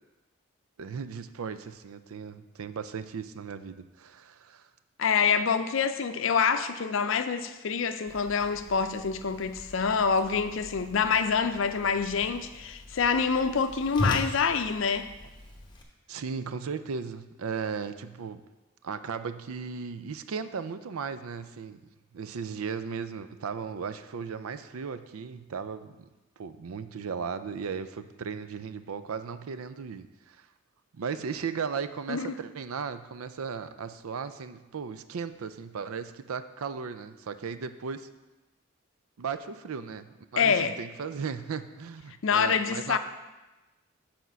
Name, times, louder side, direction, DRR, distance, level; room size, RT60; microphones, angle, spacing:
voice 1, 0.8-4.7 16.1-18.4 18.8-21.8 22.1-26.1 26.4-30.4 30.9-38.1 39.2-43.0, right 6 dB, 85° right, 0.5 m, -36 dB
voice 2, 5.0-15.1 32.1-32.3 40.4-40.8 42.2-43.0, left 6 dB, 65° left, 0.5 m, -26 dB
Whoosh swoosh swish, 8.1-15.8, left 1 dB, 20° left, 0.9 m, -39 dB
8.1 x 4.3 x 6.2 m
head